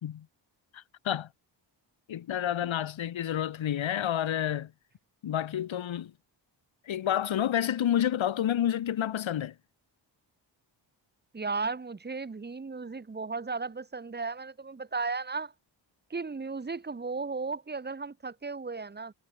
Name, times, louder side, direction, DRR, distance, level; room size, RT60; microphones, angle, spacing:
voice 1, 0.7-1.3 2.1-4.7 5.2-6.1 6.9-9.5, left 10 dB, 75° left, 2.4 m, -29 dB
voice 2, 11.3-15.5 16.1-19.1, right 4 dB, 20° right, 1.8 m, -35 dB
wide cardioid pair, 160°, 46 cm